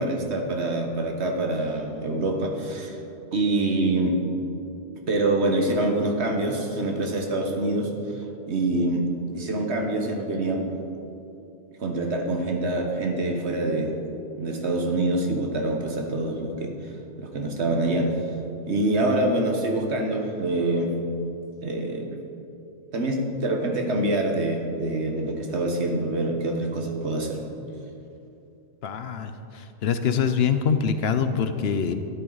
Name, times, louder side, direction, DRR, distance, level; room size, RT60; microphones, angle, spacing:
voice 1, 0.0-3.0 3.3-4.2 5.1-7.9 8.5-9.1 9.3-10.7 11.8-13.9 14.4-16.9 17.2-18.1 18.7-20.9 21.6-22.1 22.9-27.4, right 2 dB, 70° right, 3 dB, 1.5 m, -25 dB
voice 2, 28.8-31.9, left 6 dB, 65° left, 9 dB, 0.9 m, -24 dB
12.5 x 10.5 x 4.0 m, 2.8 s
omnidirectional pair, 1.2 m